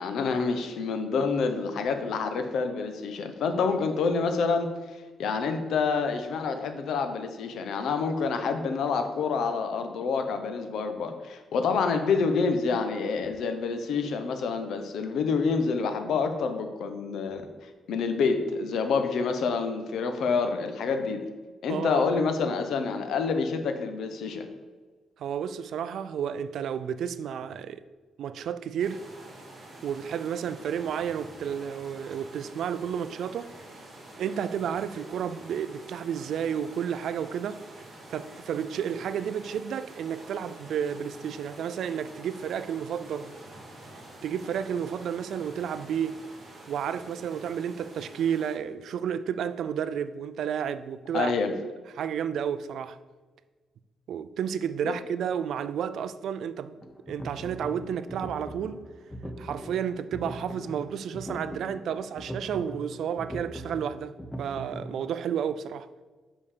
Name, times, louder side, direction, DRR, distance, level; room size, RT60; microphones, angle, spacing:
voice 1, 0.0-4.7 5.2-17.5 17.9-21.3 21.6-24.5 51.1-51.5 54.8-54.9, left 5 dB, 70° left, 0.9 m, -27 dB
voice 2, 21.7-22.2 25.2-27.8 28.2-29.0 29.8-33.5 34.2-37.6 38.1-43.3 44.2-46.2 46.7-51.3 51.9-53.0 54.1-56.8 57.1-58.8 59.4-64.1 64.4-65.9, right 8 dB, 65° right, 0.4 m, -31 dB
sound 1, 28.8-48.6, right 1 dB, 35° right, 2.2 m, -47 dB
sound 2, 56.8-64.9, right 1 dB, 10° left, 0.8 m, -40 dB
5.5 x 5.3 x 6.7 m
cardioid pair, 130°, 0 cm